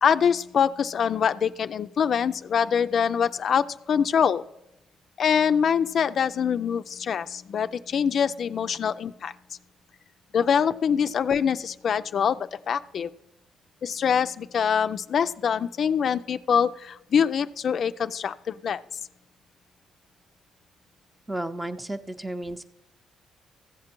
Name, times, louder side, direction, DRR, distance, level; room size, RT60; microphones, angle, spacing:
voice 1, 0.0-4.4 5.2-9.3 10.3-13.1 13.8-18.8, left 7 dB, 55° left, 12 dB, 0.3 m, -24 dB
voice 2, 21.3-22.6, right 1 dB, 10° right, 11 dB, 0.6 m, -33 dB
14.5 x 7.4 x 4.4 m, 0.86 s
cardioid pair, 90°, 0 cm